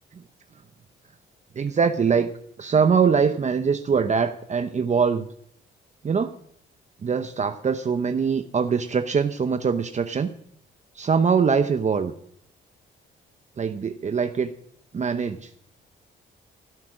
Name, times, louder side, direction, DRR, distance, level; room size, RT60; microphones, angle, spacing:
voice 1, 1.5-2.3 2.6-5.3 6.0-6.3 7.0-10.3 10.9-12.1 13.6-14.5 14.9-15.5, right 6 dB, 35° right, 8 dB, 0.9 m, -23 dB
16.0 x 8.5 x 6.3 m, 0.64 s
cardioid pair, 90°, 20 cm